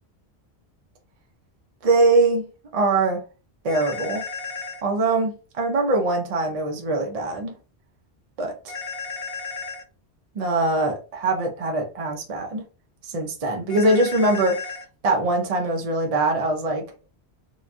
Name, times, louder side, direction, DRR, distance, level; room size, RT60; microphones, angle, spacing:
voice 1, 1.8-2.5 2.7-3.2 3.6-4.2 4.8-7.6 8.4-8.7 10.4-12.6 13.0-14.6 15.0-16.9, right 2 dB, 45° right, 0.5 m, -22 dB
sound 1, 3.7-4.8 8.7-9.8 13.7-14.9, left 5 dB, 65° left, 0.9 m, -33 dB
2.9 x 2.2 x 2.4 m
omnidirectional pair, 1.1 m